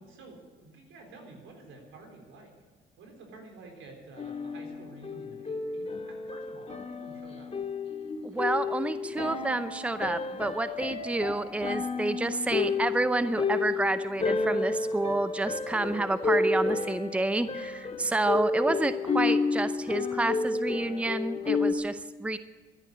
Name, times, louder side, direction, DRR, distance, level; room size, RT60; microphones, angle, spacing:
voice 1, 0.0-2.5 3.0-7.5, right 3 dB, 85° right, 3 dB, 4.1 m, -50 dB
sound 1, 4.2-21.7, left 4 dB, 30° left, 2.0 m, -31 dB
voice 2, 8.2-22.4, right 2 dB, 5° right, 12 dB, 0.7 m, -29 dB
12.5 x 11.0 x 9.7 m, 1.3 s
cardioid pair, 90°, 20 cm